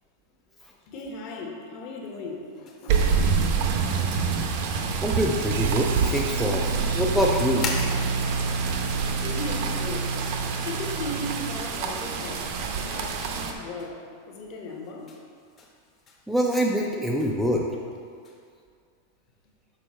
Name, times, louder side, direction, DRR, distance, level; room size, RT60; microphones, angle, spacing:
voice 1, 0.9-3.8 8.7-8.8 9.2-10.1 10.4-12.5 12.8-15.1, left 2 dB, 40° left, 0 dB, 1.1 m, -37 dB
sound 1, 2.0-18.5, left 3 dB, 25° left, 0.9 m, -45 dB
sound 2, 2.9-13.5, right 5 dB, 50° right, 0.7 m, -28 dB
voice 2, 5.0-7.7 16.3-17.7, equal, ahead, -2 dB, 0.4 m, -25 dB
sound 3, 5.5-11.6, right 4 dB, 85° right, 0.4 m, -29 dB
6.5 x 5.3 x 4.2 m, 2.2 s
supercardioid pair, 165°, 0 cm